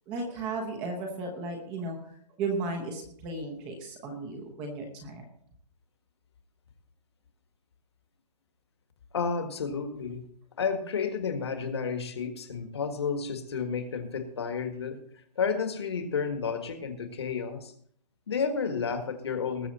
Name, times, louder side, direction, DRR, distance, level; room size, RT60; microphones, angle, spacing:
voice 1, 0.1-2.0 2.4-5.3, right 3 dB, 10° right, 2 dB, 0.9 m, -35 dB
voice 2, 9.1-10.2 10.6-17.7 18.3-19.7, left 5 dB, 40° left, 6 dB, 1.7 m, -31 dB
19.5 x 7.0 x 4.2 m, 0.63 s
hypercardioid pair, 175°, 21 cm